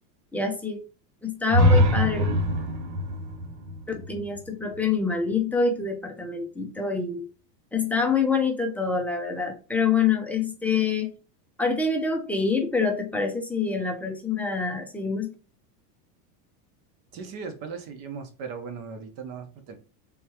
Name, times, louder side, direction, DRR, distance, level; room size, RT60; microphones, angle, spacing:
voice 1, 0.3-0.8 1.2-2.3 3.9-7.3 7.7-11.1 11.6-15.3, left 5 dB, 5° left, 2 dB, 0.5 m, -26 dB
sound 1, 1.5-5.3, left 1 dB, 85° right, 1.0 m, -23 dB
voice 2, 17.1-19.8, right 5 dB, 45° right, 6 dB, 1.0 m, -38 dB
3.6 x 3.0 x 2.9 m, 0.34 s
supercardioid pair, 130°, 47 cm